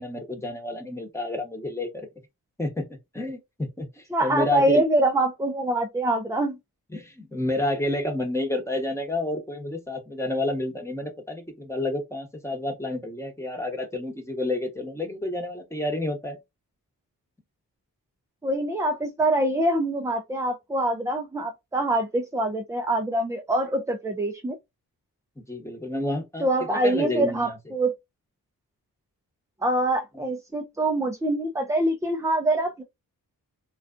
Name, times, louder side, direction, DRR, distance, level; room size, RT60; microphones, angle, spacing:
voice 1, 0.0-2.1 2.6-2.9 3.1-4.8 6.9-16.4 25.4-27.6, left 1 dB, 5° left, 1.0 m, -30 dB
voice 2, 4.1-6.6 18.4-24.6 26.4-27.9 29.6-32.8, right 1 dB, 10° right, 0.4 m, -24 dB
2.4 x 2.3 x 2.4 m
cardioid pair, 55°, 38 cm